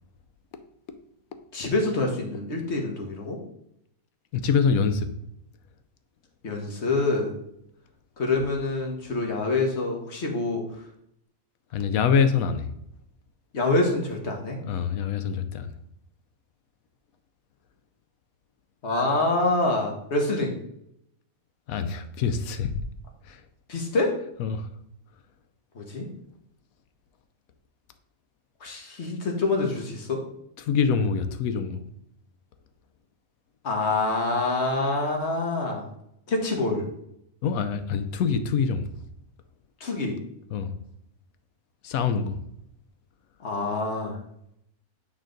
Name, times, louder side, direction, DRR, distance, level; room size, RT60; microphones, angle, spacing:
voice 1, 1.5-3.4 6.4-7.3 8.2-10.6 13.5-14.6 18.8-20.5 23.7-24.1 25.7-26.1 28.6-30.2 33.6-35.9 36.3-36.8 39.8-40.2 43.4-44.2, left 2 dB, 55° left, 1 dB, 1.5 m, -26 dB
voice 2, 4.3-5.1 11.7-12.7 14.7-15.7 21.7-22.8 23.2-23.4 24.4-24.7 30.6-31.8 37.4-38.9 40.5-40.7 41.8-42.4, left 6 dB, 90° left, 10 dB, 1.1 m, -25 dB
8.9 x 3.7 x 3.8 m, 0.76 s
omnidirectional pair, 1.4 m